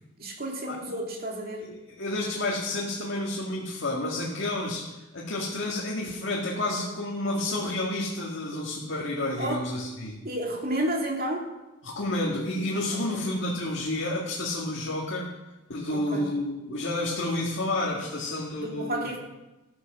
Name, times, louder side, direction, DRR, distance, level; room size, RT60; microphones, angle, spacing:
voice 1, 0.2-1.6 8.5-8.7 9.4-9.6 10.2-11.5 13.1-13.2 15.9-16.3 18.6-19.2, right 1 dB, 50° right, 0 dB, 2.5 m, -31 dB
voice 2, 1.6-10.2 11.8-15.3 15.7-19.1, left 1 dB, 60° left, -3 dB, 2.0 m, -30 dB
13.5 x 9.7 x 6.2 m, 1.0 s
head